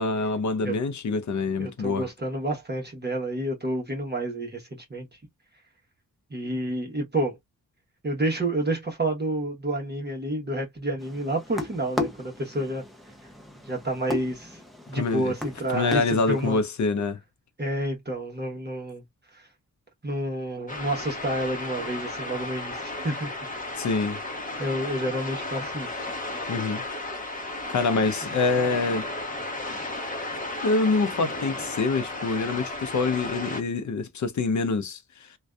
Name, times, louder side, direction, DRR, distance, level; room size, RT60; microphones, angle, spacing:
voice 1, 0.0-2.1 14.9-15.3 15.7-17.2 23.8-24.2 26.5-26.8 27.7-29.0 30.6-35.3, left 3 dB, 55° left, 0.6 m, -26 dB
voice 2, 1.6-5.1 6.3-7.4 8.0-12.8 13.7-14.6 14.9-16.6 17.6-19.0 19.3-19.5 20.0-23.5 24.6-25.9 28.3-28.4, right 1 dB, 30° right, 0.9 m, -29 dB
sound 1, 11.0-16.6, left 2 dB, ahead, 0.7 m, -36 dB
sound 2, 20.7-33.6, left 2 dB, 25° left, 0.9 m, -34 dB
2.5 x 2.3 x 2.2 m
cardioid pair, 70°, 35 cm